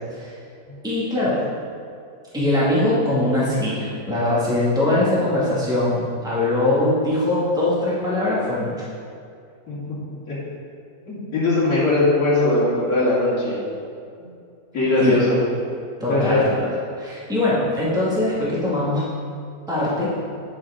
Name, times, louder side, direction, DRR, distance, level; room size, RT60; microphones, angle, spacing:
voice 1, 0.8-1.4 2.3-8.9 15.0-15.2 16.0-16.6 17.0-19.1 19.7-20.2, left 1 dB, ahead, -8 dB, 2.0 m, -21 dB
voice 2, 11.1-13.6 14.2-14.3 14.7-15.4 16.1-16.5, left 2 dB, 60° left, -9 dB, 3.0 m, -20 dB
9.5 x 7.3 x 3.8 m, 2.4 s
omnidirectional pair, 1.8 m